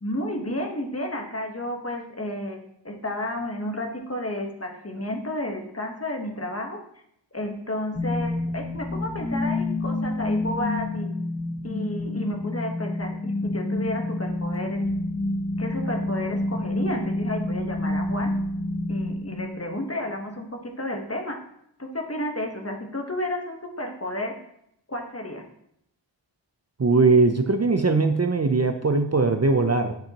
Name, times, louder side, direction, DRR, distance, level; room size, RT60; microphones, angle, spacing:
voice 1, 0.0-6.8 7.3-11.1 11.6-14.8 15.6-18.3 18.9-21.4 21.8-24.4 24.9-25.5, left 1 dB, 35° left, 3 dB, 1.2 m, -31 dB
sound 1, 7.9-19.9, left 2 dB, 15° left, 0.5 m, -28 dB
voice 2, 26.8-30.0, right 3 dB, 35° right, 6 dB, 0.5 m, -20 dB
7.9 x 7.2 x 2.9 m, 0.74 s
wide cardioid pair, 50°, 44 cm